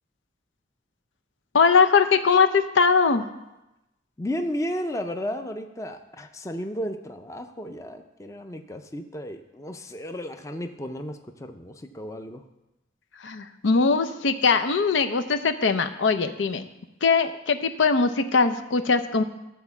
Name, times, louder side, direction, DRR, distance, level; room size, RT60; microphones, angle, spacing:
voice 1, 1.5-3.3 13.2-16.6 17.0-19.2, left 5 dB, 85° left, 9 dB, 0.6 m, -21 dB
voice 2, 4.2-12.4, equal, 15° left, 6 dB, 0.5 m, -33 dB
12.0 x 4.3 x 7.1 m, 0.95 s
head